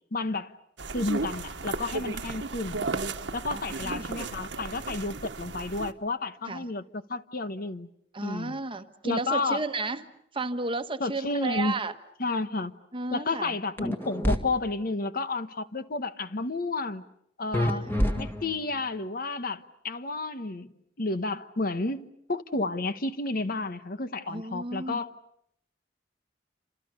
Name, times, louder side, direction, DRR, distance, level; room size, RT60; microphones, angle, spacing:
voice 1, 0.1-0.5 0.9-2.9 3.3-7.9 8.2-8.6 9.0-9.6 11.0-11.8 12.2-12.8 13.1-17.0 17.4-17.8 18.1-20.7 21.0-25.1, left 3 dB, 50° left, 11 dB, 1.2 m, -31 dB
sound 1, 0.8-5.9, right 3 dB, 75° right, 1.4 m, -34 dB
voice 2, 3.5-4.1 6.5-6.7 8.1-10.0 10.3-11.9 12.9-13.6 17.6-18.2 24.3-25.0, right 3 dB, 30° right, 8 dB, 1.2 m, -33 dB
sound 2, 13.8-14.4 17.5-18.7, equal, 10° left, 2.0 m, -27 dB
29.5 x 27.0 x 6.8 m, 0.72 s
head